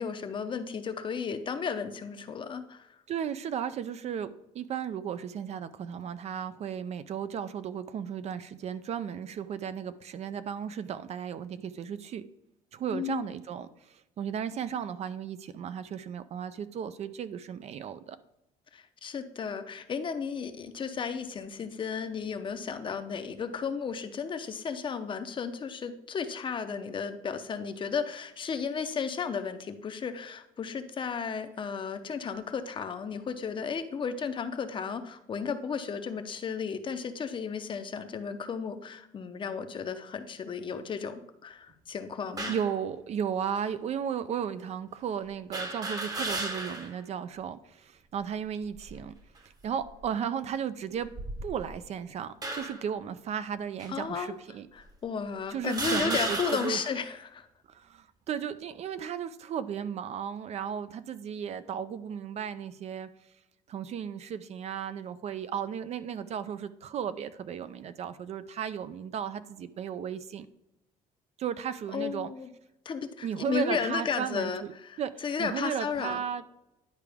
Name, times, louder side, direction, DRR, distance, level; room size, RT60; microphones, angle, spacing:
voice 1, 0.0-2.9 12.9-13.2 18.7-42.5 53.9-54.4 54.7-57.5 71.9-72.5 72.9-76.2, left 6 dB, 35° left, 9 dB, 0.6 m, -34 dB
voice 2, 3.1-12.2 12.7-18.2 42.5-49.2 49.6-51.1 51.4-54.7 55.5-56.8 57.7-63.1 63.7-70.5 71.4-72.3 73.2-74.7 75.0-76.4, right 8 dB, 45° right, 13 dB, 0.4 m, -35 dB
sound 1, 42.4-42.8 43.6-43.7 45.5-47.0 47.4-47.5 48.6-49.1 49.8-50.0 51.0-51.8 52.4-52.9 53.8-53.9 54.8-54.9 55.6-57.0, right 2 dB, 25° right, 0.9 m, -34 dB
10.5 x 4.7 x 3.5 m, 0.88 s
cardioid pair, 125°, 15 cm